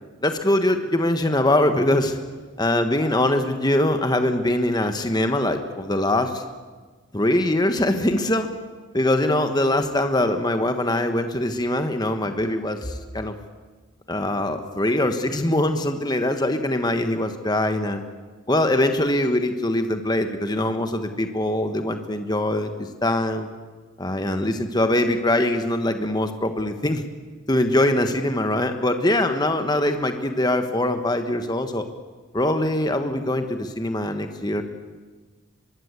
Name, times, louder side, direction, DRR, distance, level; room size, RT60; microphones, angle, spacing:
voice 1, 0.2-2.2 2.6-6.4 7.1-8.5 8.9-13.3 14.1-18.0 18.5-23.5 24.0-27.0 27.5-31.9 32.3-34.6, left 1 dB, 20° left, 7 dB, 1.4 m, -22 dB
23.5 x 23.0 x 8.3 m, 1.4 s
head